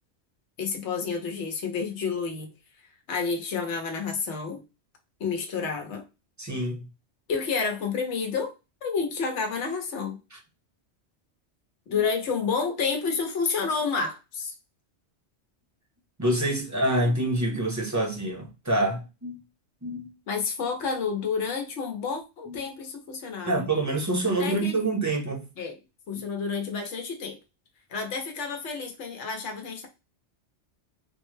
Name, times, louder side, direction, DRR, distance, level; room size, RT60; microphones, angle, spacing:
voice 1, 0.6-2.5 3.1-4.6 5.2-6.0 7.3-8.5 8.8-10.2 11.9-14.5 19.9-23.6 24.4-24.8 25.6-25.8 26.1-27.4 27.9-29.9, left 5 dB, 80° left, 1.1 m, -30 dB
voice 2, 6.4-6.9 10.3-10.4 11.9-12.0 16.2-19.4 19.8-20.0 22.5-22.6 23.5-25.5, right 1 dB, 20° right, 0.6 m, -26 dB
3.6 x 2.1 x 3.1 m
omnidirectional pair, 1.2 m